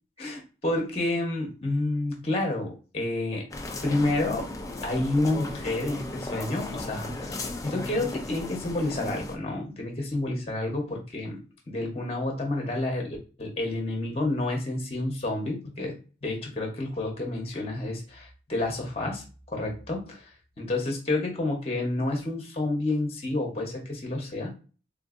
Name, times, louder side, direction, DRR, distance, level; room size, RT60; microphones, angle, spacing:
voice 1, 0.2-3.5 3.8-4.5 4.8-11.4 11.7-16.0 16.2-20.2 20.6-24.5, left 2 dB, 35° left, 2 dB, 0.8 m, -29 dB
sound 1, 3.5-9.4, left 2 dB, 20° left, 0.4 m, -36 dB
3.6 x 2.5 x 2.4 m, 0.34 s
head